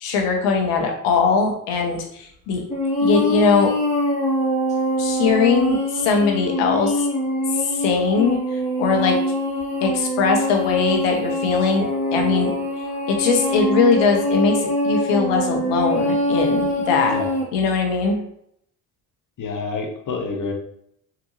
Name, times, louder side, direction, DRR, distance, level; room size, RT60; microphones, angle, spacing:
voice 1, 0.0-2.6 3.0-3.7 5.0-7.1 7.8-8.4 8.8-9.2 9.8-11.9 12.1-12.5 13.1-17.1 17.5-18.2, left 5 dB, 70° left, 2 dB, 1.0 m, -20 dB
sound 1, 2.7-17.4, left 1 dB, 15° left, 1.4 m, -23 dB
voice 2, 19.4-20.5, left 4 dB, 45° left, 2 dB, 1.0 m, -28 dB
3.7 x 2.5 x 3.0 m, 0.71 s
hypercardioid pair, 65°, 44 cm